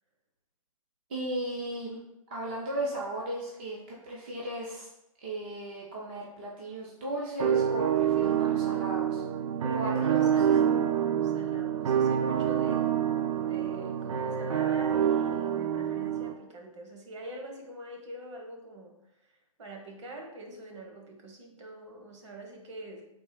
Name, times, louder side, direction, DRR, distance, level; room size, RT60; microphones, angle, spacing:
voice 1, 1.1-2.0 2.3-4.9 5.2-9.2 9.7-9.9 10.2-10.3, right 1 dB, 20° right, -4 dB, 0.4 m, -36 dB
sound 1, 7.4-16.3, right 9 dB, 70° right, 0.5 m, -27 dB
voice 2, 9.6-12.9 13.3-19.0 19.6-23.1, right 1 dB, 55° right, 3 dB, 1.0 m, -44 dB
3.6 x 2.9 x 4.8 m, 0.85 s
hypercardioid pair, 175°, 18 cm